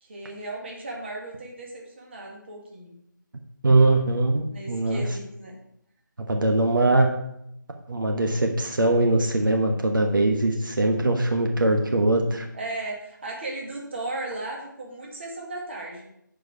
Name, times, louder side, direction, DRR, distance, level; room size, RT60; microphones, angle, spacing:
voice 1, 0.0-3.0 4.4-5.5 12.5-16.1, right 2 dB, 35° right, -1 dB, 1.8 m, -36 dB
voice 2, 3.6-5.0 6.3-7.1 7.9-12.5, right 2 dB, 80° right, 3 dB, 1.3 m, -21 dB
9.5 x 4.9 x 4.7 m, 0.77 s
figure-of-eight pair, 170°, 11 cm